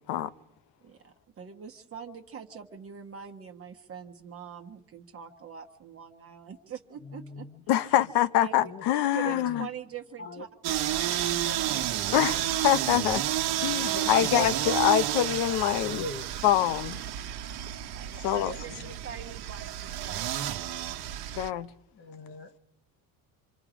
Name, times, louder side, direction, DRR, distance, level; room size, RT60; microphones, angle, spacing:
voice 1, 0.8-7.5 7.8-8.0 8.4-8.7 9.1-12.5 13.8-14.4 17.9-20.3, right 7 dB, 35° right, 1.2 m, -44 dB
voice 2, 7.0-7.6 8.6-8.9 9.2-9.6 10.2-10.5 13.8-14.5 15.3-15.4 15.8-16.2 18.4-18.9 21.9-22.5, left 2 dB, 30° left, 1.0 m, -40 dB
voice 3, 7.7-9.7 12.1-13.2 13.6-16.0 16.4-17.0 18.2-18.5 21.4-21.7, left 12 dB, 80° left, 0.9 m, -25 dB
sound 1, 10.6-21.5, right 12 dB, 70° right, 1.1 m, -31 dB
26.0 x 26.0 x 5.0 m
cardioid pair, 155°, 40 cm